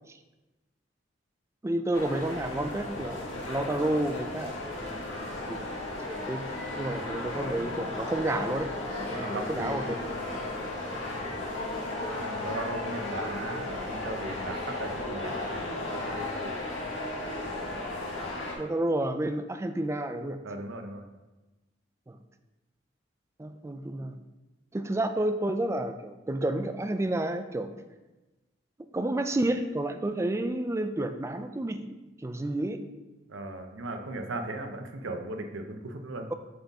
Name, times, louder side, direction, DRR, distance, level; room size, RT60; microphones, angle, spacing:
voice 1, 1.6-3.2 3.5-5.0 5.5-5.7 6.0-8.8 9.1-10.0 10.3-10.4 10.9-11.1 18.6-20.4 22.1-22.2 23.4-24.2 24.7-27.7 28.9-32.8, right 1 dB, 15° right, 8 dB, 0.3 m, -30 dB
sound 1, 1.9-18.6, left 2 dB, 75° left, 1.7 m, -35 dB
voice 2, 8.9-10.0 12.1-16.7 20.4-21.1 33.3-36.3, right 2 dB, 80° right, 5 dB, 0.7 m, -37 dB
7.6 x 4.0 x 3.5 m, 1.1 s
head